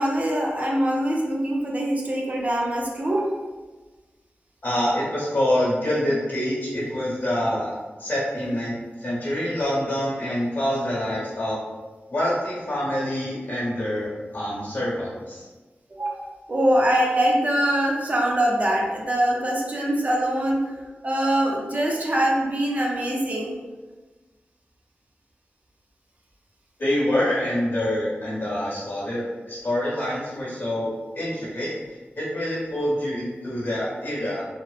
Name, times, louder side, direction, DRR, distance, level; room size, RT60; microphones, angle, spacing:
voice 1, 0.0-3.4 16.0-20.6 21.0-23.5, right 1 dB, 40° right, -2 dB, 0.4 m, -23 dB
voice 2, 4.6-11.6 12.1-15.5 26.8-31.7 32.2-34.4, left 1 dB, 60° left, -6 dB, 1.1 m, -26 dB
2.8 x 2.0 x 2.3 m, 1.3 s
wide cardioid pair, 90°, 4 cm